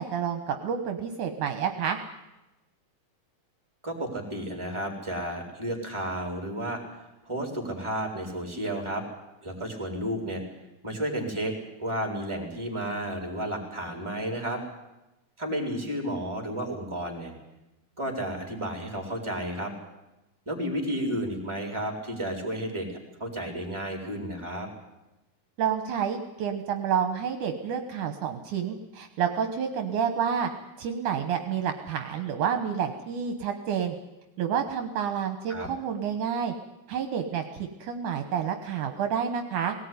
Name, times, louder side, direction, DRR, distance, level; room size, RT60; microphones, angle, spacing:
voice 1, 0.0-2.0 25.6-30.5 30.8-34.0 34.4-36.5 36.9-39.7, right 7 dB, 70° right, 6 dB, 2.6 m, -29 dB
voice 2, 3.8-6.8 7.2-9.0 9.4-10.4 10.8-11.5 11.8-14.6 15.4-17.3 18.0-19.7 20.5-22.9 23.2-24.7 35.5-35.7, right 1 dB, 10° right, 2 dB, 4.0 m, -32 dB
19.0 x 18.5 x 9.6 m, 0.97 s
omnidirectional pair, 3.8 m